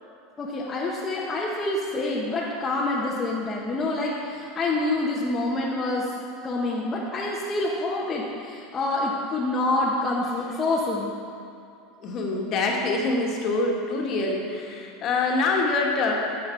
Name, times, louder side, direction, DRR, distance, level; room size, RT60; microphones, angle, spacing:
voice 1, 0.4-6.1 6.4-11.1, left 2 dB, 25° left, -5 dB, 1.1 m, -27 dB
voice 2, 12.0-16.1, left 3 dB, 45° left, -1 dB, 1.6 m, -25 dB
11.0 x 7.3 x 4.6 m, 2.5 s
supercardioid pair, 130°, 0 cm